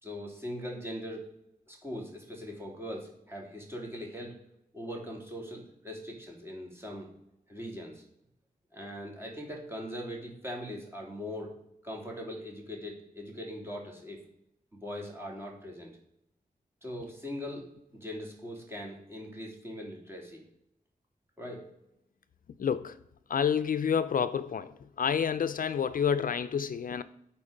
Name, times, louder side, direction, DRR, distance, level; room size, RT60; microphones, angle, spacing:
voice 1, 0.0-1.3 1.7-4.4 4.7-7.1 7.5-8.0 8.7-11.5 11.8-14.2 14.7-15.9 16.8-17.6 17.9-20.4 21.4-21.6, equal, 15° right, -1 dB, 2.9 m, -40 dB
voice 2, 22.6-22.9 23.3-24.7 25.0-27.0, left 7 dB, 60° left, 13 dB, 0.4 m, -28 dB
9.4 x 4.4 x 5.1 m, 0.81 s
cardioid pair, 50°, 16 cm